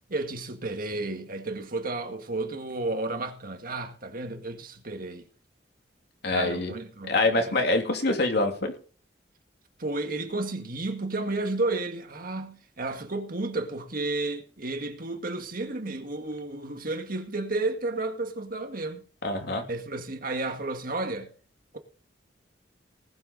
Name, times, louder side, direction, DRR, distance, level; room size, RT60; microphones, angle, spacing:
voice 1, 0.1-5.2 6.3-7.6 9.8-19.1 19.7-21.3, right 2 dB, 50° right, 1.9 m, -32 dB
voice 2, 6.2-6.7 7.1-8.7 19.2-19.6, left 2 dB, 65° left, 2.9 m, -25 dB
19.5 x 7.9 x 4.1 m
head